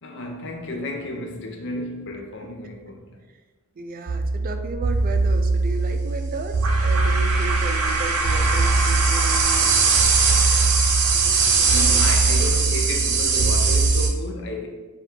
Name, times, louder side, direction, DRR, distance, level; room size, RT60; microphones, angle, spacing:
voice 1, 0.0-3.0 11.6-14.7, left 1 dB, 55° left, 0.7 m, -32 dB
voice 2, 3.8-10.0 11.1-12.0, right 2 dB, 40° right, 0.4 m, -35 dB
sound 1, 4.1-14.1, right 4 dB, 85° right, 0.7 m, -20 dB
4.9 x 2.4 x 4.4 m
head